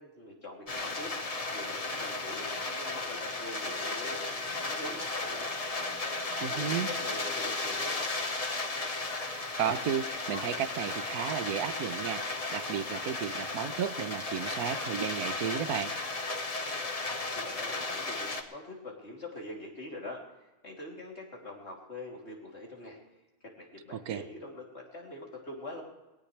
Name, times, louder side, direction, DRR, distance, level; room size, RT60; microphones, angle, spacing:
voice 1, 0.0-2.5 2.8-5.5 6.4-8.0 16.8-23.0 23.5-25.8, left 2 dB, 50° left, -2 dB, 3.5 m, -44 dB
sound 1, 0.7-18.4, left 3 dB, 30° left, 1.1 m, -35 dB
sound 2, 2.0-6.9 7.6-17.9, left 3 dB, 80° left, 2.4 m, -50 dB
voice 2, 6.4-6.9 9.3-15.9 23.9-24.2, right 8 dB, 85° right, 11 dB, 1.4 m, -33 dB
20.5 x 17.0 x 3.4 m, 1.0 s
omnidirectional pair, 1.5 m